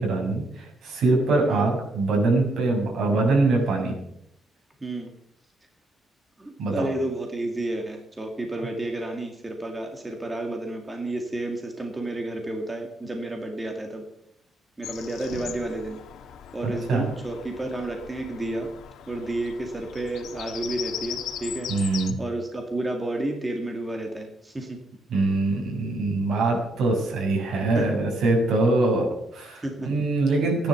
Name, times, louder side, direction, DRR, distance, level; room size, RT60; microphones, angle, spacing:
voice 1, 0.0-3.9 6.6-6.9 15.3-15.4 16.6-17.1 21.7-22.2 25.1-30.7, right 3 dB, 70° right, 0 dB, 6.4 m, -23 dB
voice 2, 6.4-14.0 14.8-16.0 16.5-18.7 19.1-21.7 22.2-24.8 27.8-27.9 29.6-29.9, right 2 dB, 15° right, 2 dB, 2.1 m, -31 dB
Bird vocalization bird call bird song, 14.8-22.1, left 9 dB, 85° left, 1.7 m, -39 dB
16.0 x 10.5 x 7.0 m, 0.76 s
cardioid pair, 160°, 0 cm